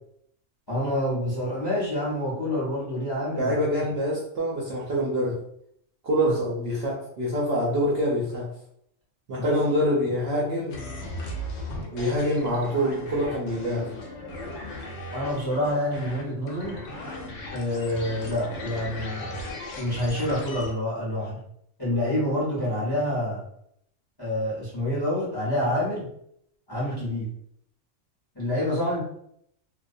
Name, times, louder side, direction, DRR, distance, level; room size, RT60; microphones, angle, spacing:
voice 1, 0.7-3.8 6.3-6.4 9.4-9.6 15.1-16.8 17.5-21.4 21.8-23.4 24.2-26.1 26.7-27.3 28.3-29.0, left 1 dB, 25° left, -8 dB, 0.5 m, -27 dB
voice 2, 3.4-5.4 6.0-8.5 9.3-10.8 11.9-13.9, equal, 65° right, -4 dB, 0.7 m, -25 dB
sound 1, 10.7-20.7, left 1 dB, 70° left, 0.8 m, -37 dB
2.3 x 2.0 x 2.5 m, 0.72 s
omnidirectional pair, 1.4 m